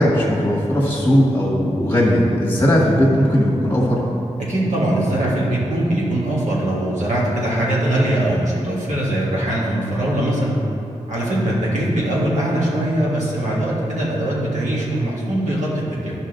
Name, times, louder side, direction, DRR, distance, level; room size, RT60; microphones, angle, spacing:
voice 1, 0.0-4.0 11.4-11.6, equal, 20° left, -5 dB, 1.5 m, -17 dB
voice 2, 4.4-10.6 11.1-16.1, right 1 dB, 80° right, -6 dB, 1.8 m, -21 dB
11.5 x 5.4 x 3.8 m, 2.8 s
wide cardioid pair, 110°, 12 cm